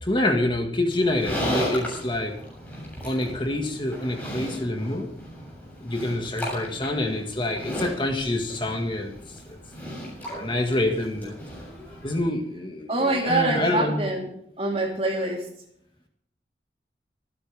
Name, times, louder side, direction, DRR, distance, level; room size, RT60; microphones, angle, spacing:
voice 1, 0.0-2.4 3.0-5.1 5.8-9.4 10.3-11.4 12.0-14.1, left 1 dB, 25° left, 3 dB, 1.8 m, -26 dB
Livestock farm animals working animals, 0.9-12.2, equal, 10° left, 7.5 m, -35 dB
voice 2, 12.9-14.3 14.6-15.5, right 2 dB, 35° right, 1 dB, 3.7 m, -25 dB
25.0 x 10.0 x 3.5 m, 0.70 s
head